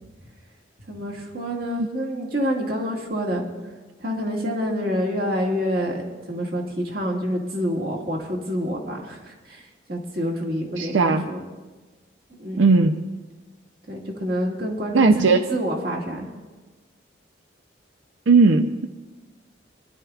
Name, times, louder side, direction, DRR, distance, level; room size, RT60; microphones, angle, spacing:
voice 1, 0.9-3.4 4.0-6.0 6.3-9.6 9.9-11.4 12.3-12.7 13.9-16.3, equal, 50° right, 0 dB, 1.9 m, -27 dB
voice 2, 10.8-11.3 12.6-13.0 14.9-15.4 18.3-18.7, right 4 dB, 85° right, 7 dB, 0.5 m, -17 dB
23.5 x 11.0 x 2.4 m, 1.3 s
head